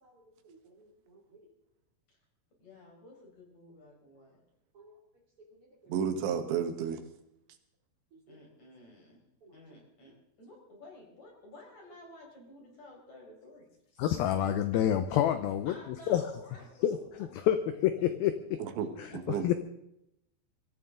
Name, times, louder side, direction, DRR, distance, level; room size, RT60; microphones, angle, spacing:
voice 1, 0.0-1.5 4.7-5.0 5.4-5.9 8.3-8.4 9.4-9.6, right 2 dB, 35° right, 0 dB, 2.9 m, -58 dB
voice 2, 2.6-4.4 8.3-9.2 9.5-10.1 10.4-13.7 15.5-16.7 17.4-17.5, left 2 dB, 40° left, -1 dB, 6.0 m, -53 dB
voice 3, 5.9-7.0 18.6-19.5, right 7 dB, 85° right, 7 dB, 3.7 m, -32 dB
voice 4, 14.0-16.2 16.8-18.6 19.0-19.5, left 11 dB, 80° left, 10 dB, 2.2 m, -28 dB
23.5 x 15.0 x 3.8 m, 0.81 s
omnidirectional pair, 5.1 m